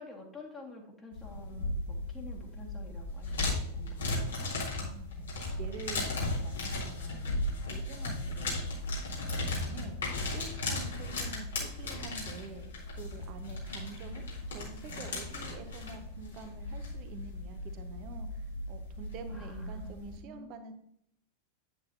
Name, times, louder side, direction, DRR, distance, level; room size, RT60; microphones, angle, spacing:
voice 1, 0.0-4.5 8.1-8.4 10.8-11.0 19.3-20.7, left 2 dB, 15° left, -1 dB, 2.0 m, -49 dB
sound 1, 1.1-20.2, left 2 dB, 65° left, 3.2 m, -36 dB
voice 2, 4.8-20.7, right 5 dB, 40° right, 7 dB, 1.3 m, -48 dB
9.3 x 8.2 x 2.8 m, 0.70 s
figure-of-eight pair, 90°, 0 cm